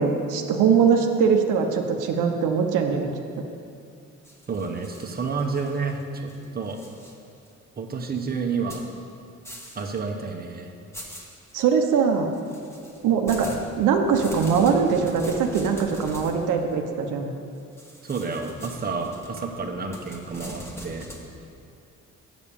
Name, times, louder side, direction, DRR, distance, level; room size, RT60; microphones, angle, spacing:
voice 1, 0.0-3.1 3.4-3.5 11.5-12.3 13.0-17.3, right 6 dB, 85° right, 3 dB, 0.8 m, -22 dB
sound 1, 4.2-6.0 6.3-7.1 7.5-7.6 8.7-8.9 9.4-10.0 10.3-10.4 10.9-11.6 12.3-16.4 17.8-21.2, equal, 10° left, 1.2 m, -41 dB
voice 2, 4.5-6.8 7.8-8.8 9.7-10.7 18.0-21.1, right 4 dB, 30° right, 2 dB, 0.9 m, -30 dB
7.1 x 6.1 x 6.9 m, 2.5 s
cardioid pair, 90°, 30 cm